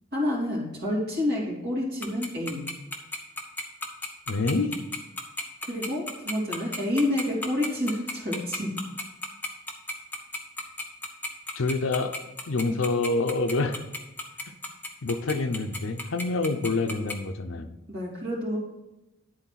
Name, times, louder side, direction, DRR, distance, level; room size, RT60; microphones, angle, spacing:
voice 1, 0.1-2.7 5.6-8.8 12.7-12.8 17.9-18.6, left 1 dB, 50° right, -5 dB, 2.7 m, -29 dB
Tick-tock, 2.0-17.1, left 2 dB, 10° left, 0.8 m, -33 dB
voice 2, 4.3-4.8 11.6-12.2 12.5-13.8 15.0-17.7, left 3 dB, 75° left, 9 dB, 0.6 m, -27 dB
10.5 x 4.0 x 5.7 m, 0.96 s
head